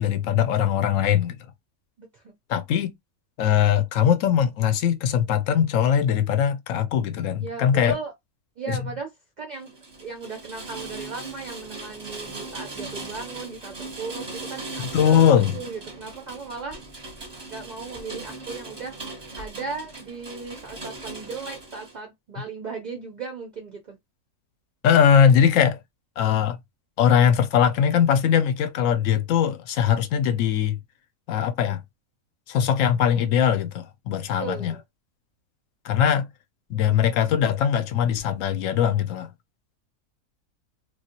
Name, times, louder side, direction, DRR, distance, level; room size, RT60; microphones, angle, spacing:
voice 1, 0.0-1.4 2.5-2.9 3.4-7.9 14.9-15.6 24.8-25.8 26.2-26.6 27.0-30.8 31.3-31.8 32.5-34.7 35.8-36.3 36.7-39.3, left 8 dB, 70° left, 0.9 m, -21 dB
voice 2, 2.0-2.3 7.4-8.1 8.6-9.1 9.4-9.7 10.0-16.8 17.5-24.0 34.4-34.8, right 4 dB, 50° right, 0.5 m, -37 dB
Rain, 9.6-21.9, right 2 dB, 20° right, 0.8 m, -39 dB
3.1 x 2.4 x 2.8 m
omnidirectional pair, 1.5 m